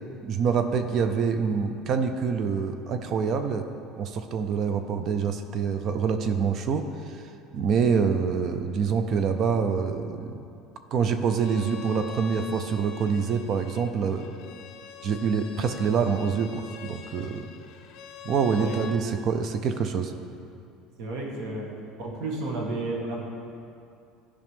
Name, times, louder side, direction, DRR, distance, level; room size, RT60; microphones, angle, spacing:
voice 1, 0.2-3.7 4.0-7.2 7.5-10.4 10.9-14.3 15.0-17.5 18.2-20.1, right 6 dB, 40° right, 8 dB, 0.5 m, -26 dB
Bowed string instrument, 11.4-19.0, left 8 dB, 50° left, 0.6 m, -44 dB
voice 2, 21.0-21.7 22.0-23.2, right 2 dB, 65° right, -1 dB, 1.5 m, -32 dB
12.5 x 4.9 x 3.6 m, 2.6 s
cardioid pair, 160°, 0 cm